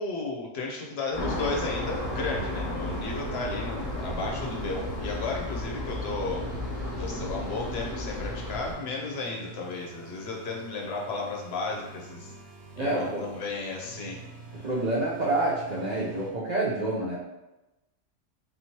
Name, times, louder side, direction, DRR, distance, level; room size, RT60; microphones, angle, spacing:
voice 1, 0.0-6.4 7.0-12.3 12.8-14.2 14.5-14.7, left 3 dB, 60° left, 0 dB, 0.9 m, -34 dB
sound 1, 1.1-8.7, left 1 dB, 35° left, 1.3 m, -33 dB
sound 2, 1.7-16.3, right 3 dB, 70° right, 1.0 m, -46 dB
voice 2, 12.8-13.3 14.6-17.2, right 2 dB, 45° right, -6 dB, 0.6 m, -28 dB
4.1 x 3.0 x 2.9 m, 1.0 s
omnidirectional pair, 1.3 m